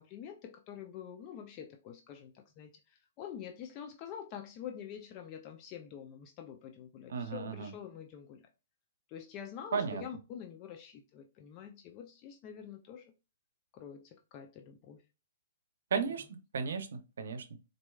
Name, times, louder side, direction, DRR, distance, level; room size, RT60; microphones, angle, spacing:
voice 1, 0.0-2.7 3.2-8.4 9.1-13.1 13.7-15.0, left 8 dB, 35° left, 0.4 m, -46 dB
voice 2, 7.1-7.7 9.7-10.0 15.9-16.2 16.5-17.4, right 6 dB, 75° right, 0.6 m, -34 dB
4.3 x 2.6 x 2.3 m
hypercardioid pair, 145°, 0 cm